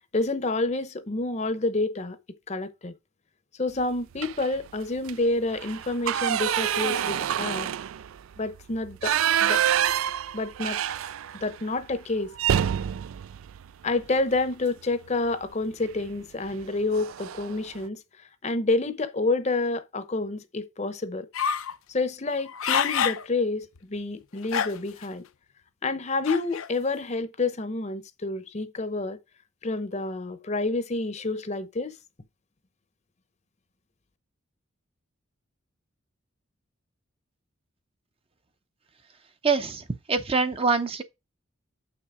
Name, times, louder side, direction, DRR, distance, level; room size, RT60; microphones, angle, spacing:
voice 1, 0.1-2.2 2.5-2.9 3.6-7.7 8.4-9.6 10.3-10.8 11.4-12.3 13.8-18.0 18.4-21.3 21.9-25.3 25.8-29.2 29.6-31.9, left 2 dB, 35° left, 0.8 m, -28 dB
sound 1, 4.2-4.6 5.0-5.1 5.5-11.5 11.8-11.9 12.3-14.5 15.8-16.1 16.5-16.6 16.9-17.6, right 10 dB, 85° right, 0.4 m, -27 dB
sound 2, 21.3-21.8 22.3-23.2 23.8-23.9 24.4-25.0 26.2-26.7, left 7 dB, 85° left, 0.7 m, -26 dB
voice 2, 39.4-39.8 40.1-41.0, right 4 dB, 25° right, 0.6 m, -24 dB
7.3 x 5.9 x 4.8 m
head